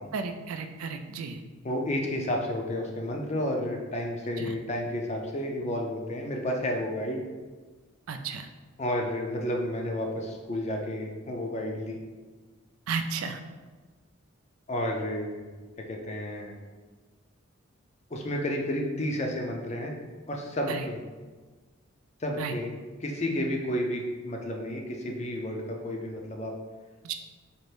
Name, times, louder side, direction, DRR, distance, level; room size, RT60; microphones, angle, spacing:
voice 1, 0.1-1.4 4.4-4.5 8.1-8.5 12.9-13.4 20.7-20.9 22.4-22.6 27.0-27.2, right 5 dB, 85° right, 7 dB, 0.4 m, -33 dB
voice 2, 1.6-7.2 8.8-12.0 14.7-15.4 15.8-16.5 18.1-19.9 20.3-21.0 22.2-22.7 23.0-26.5, left 1 dB, 30° left, 1 dB, 0.5 m, -31 dB
4.3 x 2.6 x 3.3 m, 1.4 s
head